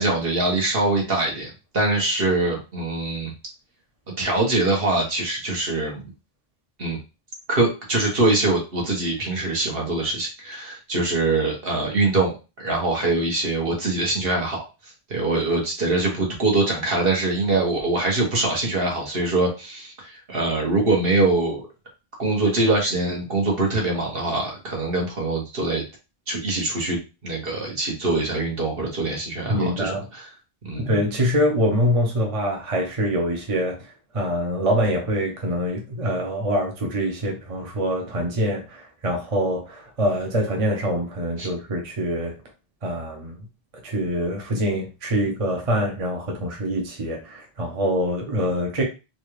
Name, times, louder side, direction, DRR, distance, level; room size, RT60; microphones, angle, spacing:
voice 1, 0.0-3.3 4.1-6.0 6.8-7.0 7.5-14.6 15.1-21.6 22.2-25.8 26.3-30.2 30.6-30.9 41.4-41.5, right 2 dB, 65° right, -1 dB, 1.4 m, -23 dB
voice 2, 29.5-30.1 30.7-42.4 42.8-43.5 43.7-48.8, equal, 35° right, 1 dB, 0.8 m, -25 dB
4.0 x 2.4 x 3.1 m, 0.29 s
omnidirectional pair, 1.1 m